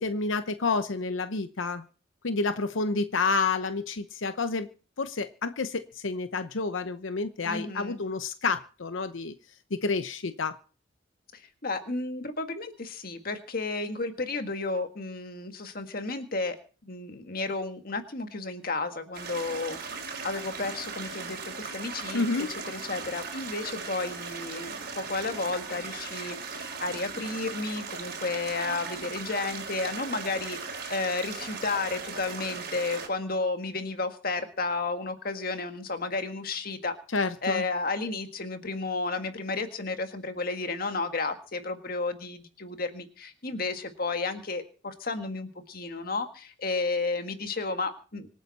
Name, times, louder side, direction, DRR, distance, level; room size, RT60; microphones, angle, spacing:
voice 1, 0.0-1.8 2.2-4.7 5.0-9.3 9.7-10.6 22.1-22.5 37.1-37.6, left 4 dB, 85° left, 10 dB, 0.8 m, -29 dB
voice 2, 7.4-8.0 11.3-16.6 16.8-19.8 20.2-22.2 22.7-30.6 30.9-36.9 37.4-48.3, left 3 dB, 50° left, 7 dB, 1.8 m, -32 dB
sound 1, 19.1-33.1, right 5 dB, 50° right, 4.4 m, -38 dB
25.5 x 9.3 x 4.2 m, 0.39 s
head